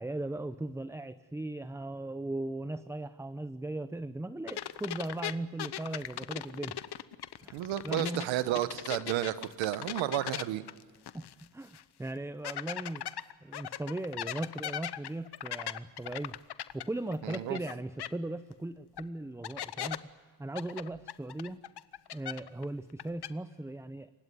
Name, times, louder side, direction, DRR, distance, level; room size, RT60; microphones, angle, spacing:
voice 1, 0.0-6.8 7.4-8.3 11.1-16.3 16.7-20.1 20.4-21.6 22.1-24.1, right 2 dB, 5° right, 12 dB, 0.8 m, -38 dB
sound 1, 4.5-8.3 8.5-11.4 11.7-11.8 12.4-17.7 18.0-18.1 19.0-19.1 19.4-20.0 20.6-22.6 22.9-23.3, left 11 dB, 60° left, 1.0 m, -38 dB
voice 2, 7.5-10.6 17.2-17.6, right 13 dB, 90° right, 13 dB, 1.1 m, -32 dB
28.5 x 16.0 x 9.5 m, 1.5 s
supercardioid pair, 70°, 46 cm